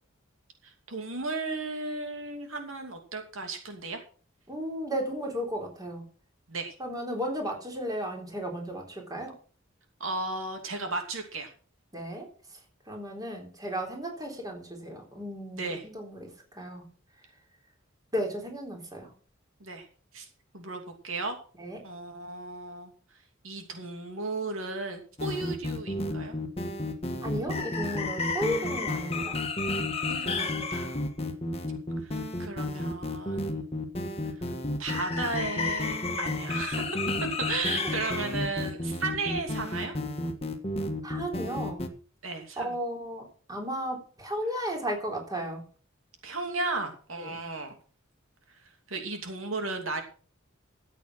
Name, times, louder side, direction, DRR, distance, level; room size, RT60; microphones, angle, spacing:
voice 1, 0.6-4.0 6.5-6.7 10.0-11.5 15.6-15.8 19.6-19.9 20.1-20.3 20.5-21.4 21.8-22.9 23.4-26.3 30.1-30.9 32.0-33.6 34.8-37.0 37.4-40.0 42.2-42.7 46.2-47.8 48.6-50.0, right 3 dB, 75° right, 5 dB, 2.7 m, -35 dB
voice 2, 4.5-6.0 6.8-9.3 11.9-12.3 12.9-16.3 16.6-16.8 18.1-19.1 21.6-21.8 27.2-29.4 41.0-41.8 42.6-43.2 43.5-45.6 47.2-47.4, equal, 20° right, 2 dB, 3.7 m, -34 dB
sound 1, 25.2-41.9, left 2 dB, 30° left, 1.6 m, -31 dB
14.0 x 8.4 x 6.2 m, 0.41 s
head